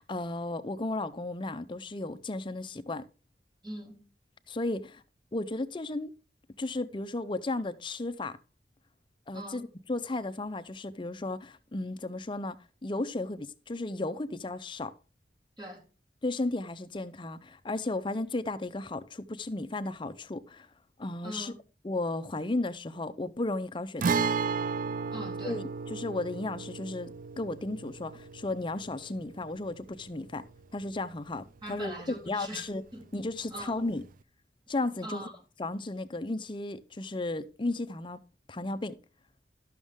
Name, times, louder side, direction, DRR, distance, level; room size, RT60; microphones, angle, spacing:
voice 1, 0.0-3.1 4.5-5.0 5.3-6.1 6.6-8.4 9.3-12.6 12.8-14.9 16.2-20.7 21.0-21.5 21.8-24.2 25.4-30.4 30.7-31.9 32.3-32.8 33.1-34.0 34.7-35.3 35.6-38.2 38.5-39.0, left 2 dB, 25° left, 0.6 m, -34 dB
voice 2, 3.6-4.1 9.3-9.7 15.6-15.9 21.2-21.6 25.1-25.7 31.6-33.1 33.5-33.8 35.0-35.4, right 1 dB, 25° right, 1.9 m, -42 dB
Guitar, 24.0-31.6 31.9-32.0 34.0-34.1, right 5 dB, 45° right, 0.4 m, -34 dB
12.5 x 6.3 x 3.6 m
head